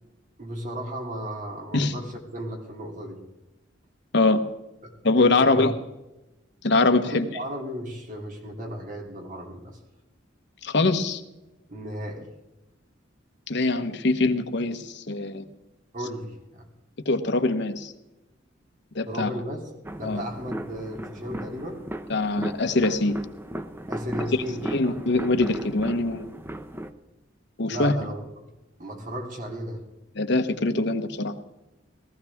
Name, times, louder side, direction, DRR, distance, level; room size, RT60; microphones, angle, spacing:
voice 1, 0.4-3.2 4.8-5.7 7.0-9.8 11.7-12.3 15.9-16.7 19.1-19.7 20.0-21.9 23.9-25.0 27.7-28.5 28.8-29.8, equal, 45° right, 1 dB, 3.1 m, -35 dB
voice 2, 5.0-5.7 6.6-7.3 10.6-11.2 13.5-15.4 17.1-17.9 18.9-19.3 20.0-20.2 22.1-23.2 24.7-26.3 27.6-27.9 30.2-31.3, left 2 dB, 65° left, 8 dB, 1.1 m, -23 dB
sound 1, 19.8-26.9, right 1 dB, 10° right, 0.7 m, -36 dB
18.5 x 14.5 x 3.6 m, 0.99 s
head